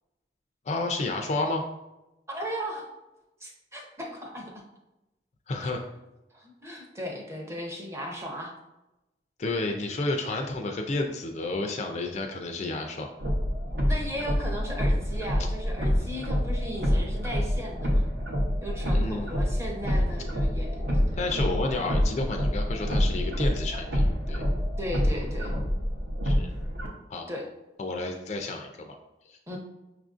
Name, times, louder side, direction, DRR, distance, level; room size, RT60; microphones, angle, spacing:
voice 1, 0.7-1.6 5.5-5.8 9.4-13.1 18.9-19.4 21.1-24.4 26.2-26.5 27.1-27.3 27.8-29.0 29.3-29.4, left 2 dB, 40° left, 3 dB, 0.3 m, -31 dB
voice 2, 2.3-2.9 3.4-4.5 6.3-8.5 13.9-18.0 18.6-21.2 24.8-25.5 27.3-27.4 29.5-29.6, equal, 15° right, 0 dB, 0.6 m, -36 dB
sound 1, 13.2-26.9, equal, 65° right, 0.7 m, -27 dB
5.9 x 2.5 x 2.4 m, 0.97 s
head